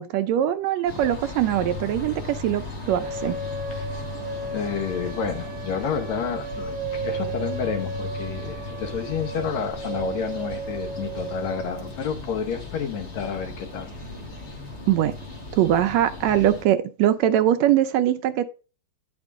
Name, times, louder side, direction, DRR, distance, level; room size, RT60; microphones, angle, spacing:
voice 1, 0.0-3.4 14.9-15.1 15.6-18.4, right 11 dB, 80° right, 9 dB, 1.7 m, -22 dB
sound 1, 0.9-16.7, left 3 dB, 40° left, 1.5 m, -37 dB
sound 2, 3.0-11.9, right 4 dB, 60° right, 1.3 m, -35 dB
voice 2, 4.5-13.9, left 7 dB, 70° left, 6 dB, 2.4 m, -30 dB
9.6 x 5.2 x 3.6 m, 0.34 s
omnidirectional pair, 3.3 m